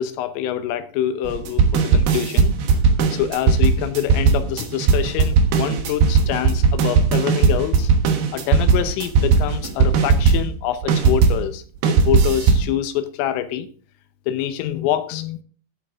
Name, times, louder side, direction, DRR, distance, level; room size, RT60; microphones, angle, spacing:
voice 1, 0.0-2.5 3.1-7.9 8.3-11.6 11.9-13.7 14.3-15.4, left 11 dB, 85° left, 3.5 m, -25 dB
sound 1, 1.2-11.4 11.8-12.7, right 5 dB, 65° right, 2.7 m, -17 dB
13.0 x 8.6 x 3.7 m
omnidirectional pair, 5.7 m